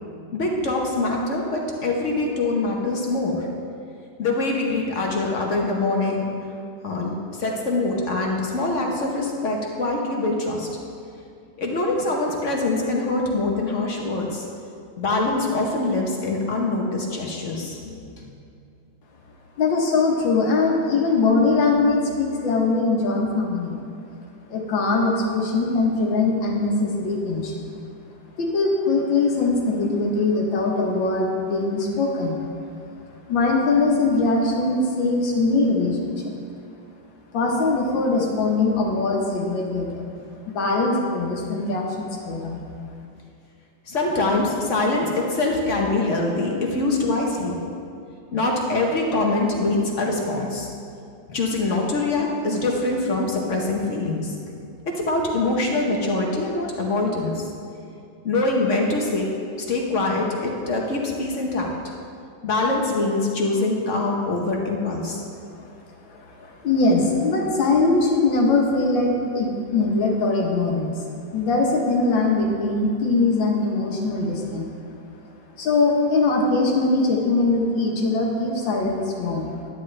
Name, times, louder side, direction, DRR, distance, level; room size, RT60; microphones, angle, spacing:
voice 1, 0.3-3.5 4.2-6.3 6.8-10.7 11.6-14.5 15.0-18.3 43.9-47.6 48.3-50.7 51.3-54.4 54.9-57.5 58.2-59.2 59.6-61.7 62.4-65.2, left 2 dB, 50° left, 0 dB, 1.1 m, -24 dB
voice 2, 19.6-23.8 24.5-27.6 28.4-32.4 33.3-36.3 37.3-40.0 40.5-42.6 66.1-71.0 71.3-74.7 75.6-79.5, left 3 dB, 90° left, 0 dB, 1.9 m, -21 dB
10.0 x 10.0 x 3.3 m, 2.5 s
omnidirectional pair, 2.0 m